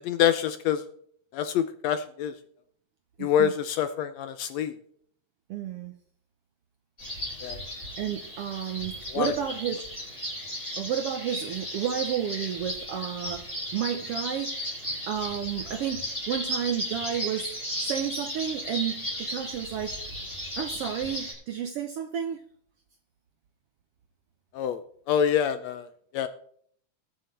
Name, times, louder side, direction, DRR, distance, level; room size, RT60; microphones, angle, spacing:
voice 1, 0.0-0.8 1.3-2.3 3.2-4.7 7.4-7.6 9.1-9.3 24.5-24.8 25.1-25.9 26.1-26.3, left 9 dB, 75° left, 10 dB, 1.6 m, -26 dB
voice 2, 3.2-3.5 5.5-5.9 8.0-9.8 10.8-14.6 15.1-17.5 17.8-20.0 20.6-22.4, right 9 dB, 75° right, 7 dB, 1.4 m, -31 dB
sound 1, 7.0-21.3, equal, 20° left, 6.1 m, -35 dB
21.0 x 7.6 x 3.3 m, 0.63 s
omnidirectional pair, 3.5 m